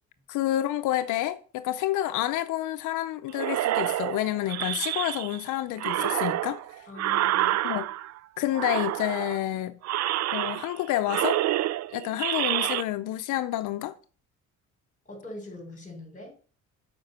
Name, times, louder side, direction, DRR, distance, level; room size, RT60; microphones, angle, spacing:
voice 1, 0.3-6.9 7.6-7.9 8.4-9.8 10.3-11.4 11.9-14.0, left 14 dB, 85° left, 0.6 m, -29 dB
sound 1, 3.3-5.4 5.8-8.2 8.5-9.4 9.8-10.8 11.1-12.8, right 14 dB, 60° right, 0.4 m, -28 dB
voice 2, 6.9-7.6 15.0-16.3, left 2 dB, 25° left, 4.3 m, -42 dB
7.8 x 5.1 x 6.7 m
cardioid pair, 90°, 30 cm